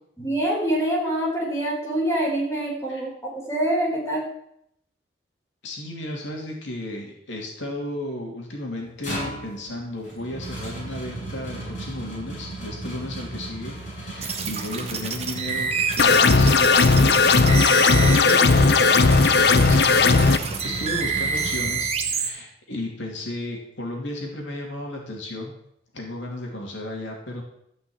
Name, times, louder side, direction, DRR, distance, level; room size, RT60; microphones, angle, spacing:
voice 1, 0.2-3.1 3.5-4.2, right 1 dB, 15° left, -3 dB, 4.3 m, -25 dB
voice 2, 5.6-17.2 18.1-20.1 20.6-25.5 25.9-27.4, left 1 dB, 75° left, 0 dB, 2.8 m, -34 dB
sound 1, 8.7-22.2, right 2 dB, 40° left, 6.3 m, -36 dB
sound 2, 14.2-22.3, right 5 dB, 30° right, 1.4 m, -28 dB
sound 3, 16.0-20.4, left 4 dB, 55° left, 0.6 m, -16 dB
14.0 x 5.6 x 8.8 m, 0.75 s
head